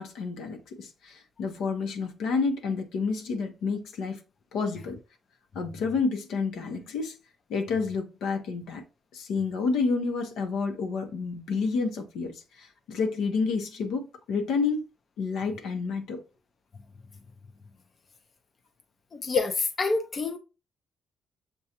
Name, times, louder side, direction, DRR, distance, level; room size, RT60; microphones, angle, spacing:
voice 1, 0.0-4.2 4.5-5.0 5.5-7.2 7.5-8.8 9.1-14.9 15.2-16.2, left 4 dB, 85° left, 0.8 m, -29 dB
voice 2, 19.1-20.4, left 4 dB, 40° left, 0.5 m, -27 dB
6.6 x 2.3 x 2.8 m
cardioid pair, 90°, 0 cm